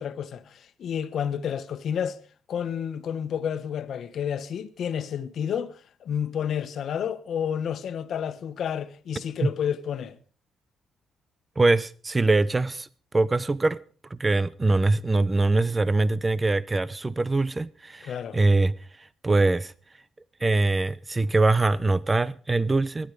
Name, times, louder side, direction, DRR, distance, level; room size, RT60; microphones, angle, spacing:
voice 1, 0.0-2.2 2.5-10.2 18.0-18.4, left 8 dB, 65° left, 1.3 m, -30 dB
voice 2, 11.6-12.9 13.1-13.8 14.1-19.7 20.4-23.1, right 2 dB, 20° right, 0.7 m, -23 dB
23.0 x 9.8 x 4.9 m
cardioid pair, 90°, 0 cm